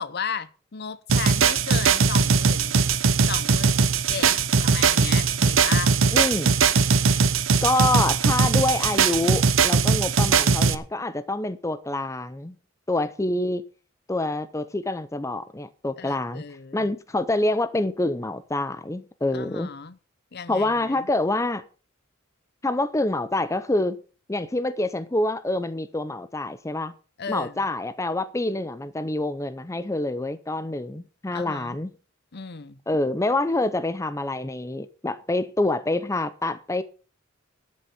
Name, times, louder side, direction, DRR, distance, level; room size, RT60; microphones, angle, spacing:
voice 1, 0.0-2.9 3.3-4.3 4.6-6.0 16.0-16.9 19.3-19.9 20.3-21.0 27.2-27.6 31.3-31.8 32.3-32.8, left 6 dB, 55° left, 0.8 m, -35 dB
sound 1, 1.1-10.7, right 5 dB, 80° right, 0.9 m, -20 dB
voice 2, 6.1-6.6 7.6-12.6 12.9-13.6 14.1-16.4 16.7-19.7 20.5-21.6 22.6-24.0 24.3-26.9 27.3-31.9 32.9-36.8, left 2 dB, 15° left, 0.6 m, -26 dB
12.5 x 6.3 x 7.1 m
head